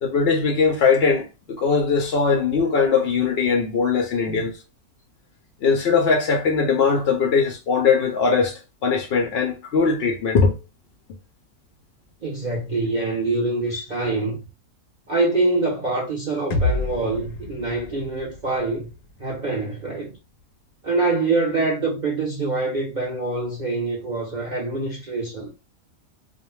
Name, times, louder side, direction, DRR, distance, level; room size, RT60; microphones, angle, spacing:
voice 1, 0.0-4.5 5.6-10.5, left 5 dB, 75° left, 0.5 m, -20 dB
voice 2, 12.2-14.4 15.1-18.9 19.2-20.1 20.8-25.5, right 3 dB, 70° right, 0.4 m, -25 dB
sound 1, 16.5-20.4, left 2 dB, 90° left, 1.1 m, -30 dB
2.5 x 2.1 x 3.0 m
omnidirectional pair, 1.6 m